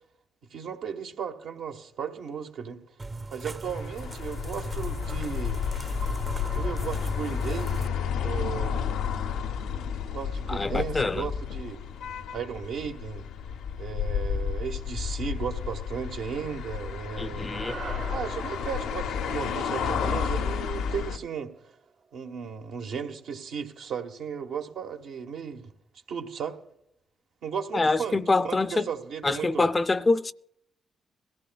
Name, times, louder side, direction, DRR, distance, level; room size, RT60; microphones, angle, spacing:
voice 1, 0.5-2.8 3.3-5.6 6.5-7.8 8.1-8.8 10.1-11.8 12.3-13.3 13.8-17.5 18.1-21.5 22.1-25.7 26.1-26.6 27.4-28.2 28.4-29.7, right 7 dB, 80° right, 1.1 m, -35 dB
sound 1, 3.0-7.9, right 3 dB, 35° right, 0.6 m, -38 dB
sound 2, 3.6-21.2, left 7 dB, 90° left, 0.5 m, -31 dB
voice 2, 10.5-11.3 17.2-17.8 27.7-28.9 29.2-30.3, left 3 dB, 30° left, 0.4 m, -25 dB
sound 3, 17.5-21.9, right 5 dB, 55° right, 0.9 m, -43 dB
22.0 x 14.5 x 2.3 m
supercardioid pair, 55°, 0 cm